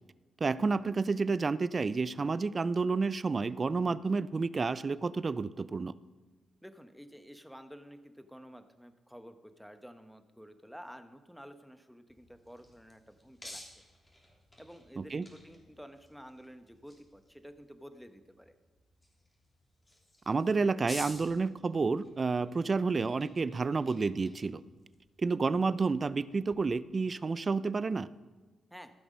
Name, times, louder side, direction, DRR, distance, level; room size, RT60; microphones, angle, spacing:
voice 1, 0.4-5.9 15.0-15.3 20.3-24.6 25.2-28.1, right 4 dB, 45° right, 17 dB, 0.4 m, -30 dB
voice 2, 6.6-13.6 14.6-18.6 28.7-28.9, equal, ahead, 9 dB, 1.1 m, -51 dB
sound 1, 12.1-26.6, left 1 dB, 25° left, 3.2 m, -53 dB
14.5 x 6.0 x 5.2 m, 1.3 s
supercardioid pair, 50°, 0 cm